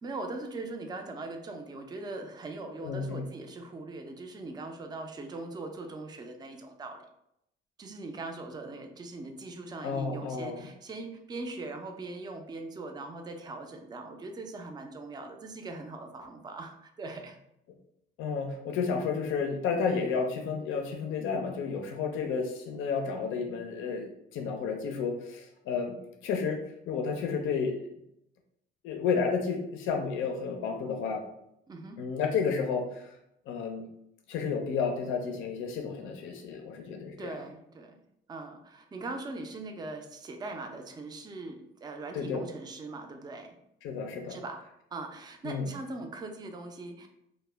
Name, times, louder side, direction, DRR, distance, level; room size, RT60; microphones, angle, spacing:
voice 1, 0.0-7.1 7.8-17.4 31.7-32.0 37.2-38.0 38.3-43.6 44.3-44.6 44.9-47.1, right 2 dB, 20° right, 4 dB, 0.3 m, -41 dB
voice 2, 2.8-3.2 9.8-10.6 18.2-26.0 26.2-27.8 28.8-31.2 32.0-33.2 33.5-33.8 34.3-37.4 42.1-42.4 43.8-44.4 45.4-45.7, left 5 dB, 90° left, 3 dB, 0.4 m, -31 dB
2.1 x 2.1 x 3.2 m, 0.78 s
cardioid pair, 90°, 20 cm